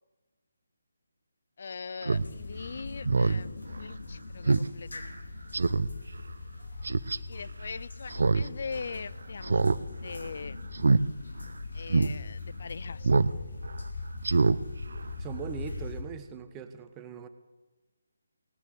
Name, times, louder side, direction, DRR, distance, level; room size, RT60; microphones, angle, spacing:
voice 1, 1.6-5.0 7.3-9.6 10.0-10.6 11.7-13.1, left 5 dB, 55° left, 18 dB, 0.4 m, -41 dB
Speech synthesizer, 2.0-2.2 2.6-2.7 3.0-3.4 3.8-3.9 4.5-4.7 5.0-5.1 5.5-5.9 6.8-7.2 8.1-8.5 8.8-8.9 9.4-9.8 10.1-10.3 10.7-11.0 11.4-11.5 11.9-12.1 13.0-13.3 13.7-13.8 14.2-14.6 14.9-15.0, right 3 dB, 65° right, 0.6 m, -24 dB
sound 1, 2.1-16.0, left 3 dB, 70° left, 2.7 m, -40 dB
voice 2, 15.2-17.3, right 7 dB, 15° right, 9 dB, 1.0 m, -40 dB
17.5 x 9.5 x 8.1 m, 1.2 s
figure-of-eight pair, 150°, 0 cm